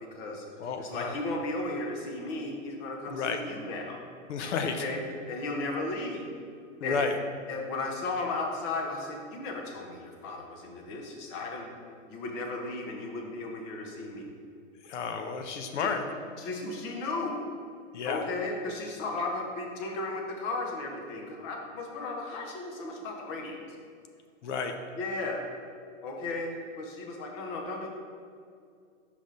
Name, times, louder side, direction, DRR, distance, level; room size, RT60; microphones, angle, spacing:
voice 1, 0.0-0.4 0.8-4.0 4.6-6.3 6.8-7.0 7.5-11.7 12.1-14.3 15.8-15.9 16.4-17.3 18.0-23.6 25.0-25.5 26.0-27.9, left 2 dB, 35° left, 1 dB, 1.1 m, -35 dB
voice 2, 0.6-1.1 3.1-3.4 4.3-4.8 6.8-7.1 14.9-16.0 17.9-18.2 24.4-24.7, left 5 dB, 65° left, 6 dB, 0.7 m, -31 dB
5.2 x 5.0 x 3.8 m, 2.3 s
hypercardioid pair, 135°, 39 cm